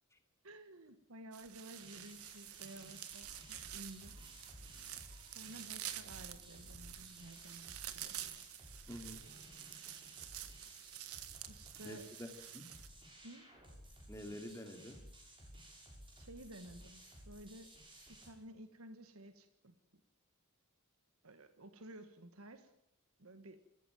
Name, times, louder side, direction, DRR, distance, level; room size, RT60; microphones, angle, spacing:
voice 1, 0.4-4.2 5.2-7.8 8.0-8.2 11.5-12.0 13.2-13.5 16.2-17.8 18.1-20.0 21.2-22.7 23.2-23.6, right 1 dB, 70° right, 9 dB, 1.5 m, -54 dB
sound 1, 1.3-12.9, right 12 dB, 90° right, 1.7 m, -49 dB
sound 2, 1.8-18.3, right 1 dB, 25° right, 6.7 m, -57 dB
sound 3, 3.1-9.0, left 1 dB, 70° left, 3.7 m, -65 dB
voice 2, 8.9-9.2 11.8-12.7 14.1-15.0, equal, 15° left, 5 dB, 2.9 m, -48 dB
25.0 x 14.5 x 9.1 m, 0.77 s
head